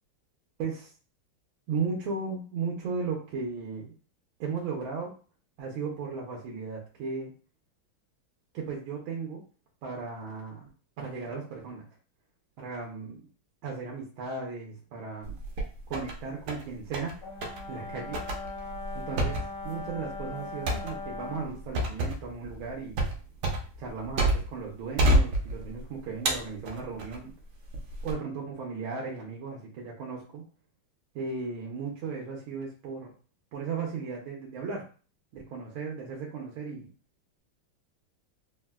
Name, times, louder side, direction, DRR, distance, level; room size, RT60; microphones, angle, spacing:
voice 1, 0.6-0.9 1.7-3.9 4.4-5.1 5.6-7.3 8.5-9.4 9.8-10.7 11.0-11.8 12.6-13.2 13.6-15.4 15.9-17.2 17.7-18.2 18.9-23.0 23.8-27.3 28.0-30.4 31.1-33.1 33.5-34.8 35.3-36.9, right 5 dB, 85° right, -2 dB, 1.5 m, -36 dB
sound 1, 15.2-16.1 16.5-17.1 17.4-17.6 18.1-24.6 25.0-25.8 26.3-27.2 27.7-28.1, right 1 dB, 65° right, 1.1 m, -28 dB
Brass instrument, 17.2-21.6, left 3 dB, 80° left, 1.5 m, -40 dB
3.9 x 2.1 x 2.2 m, 0.38 s
omnidirectional pair, 2.2 m